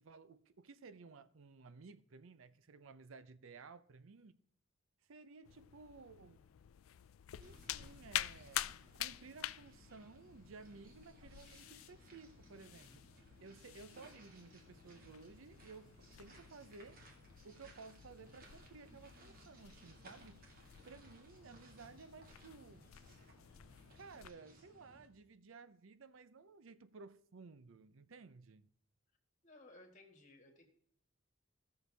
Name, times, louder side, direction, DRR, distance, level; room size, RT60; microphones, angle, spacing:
voice 1, 0.0-4.4 5.1-6.4 7.4-8.6 9.0-13.1 13.4-17.0 17.4-20.4 20.8-22.9 23.9-28.7, right 4 dB, 75° right, 0.6 m, -56 dB
sound 1, 5.4-24.3, left 13 dB, 85° left, 0.4 m, -49 dB
sound 2, 7.4-25.1, right 1 dB, 45° right, 1.8 m, -62 dB
sound 3, 14.1-22.1, equal, 25° right, 1.9 m, -73 dB
voice 2, 29.4-30.6, left 2 dB, 35° left, 1.8 m, -59 dB
16.5 x 6.6 x 3.3 m
head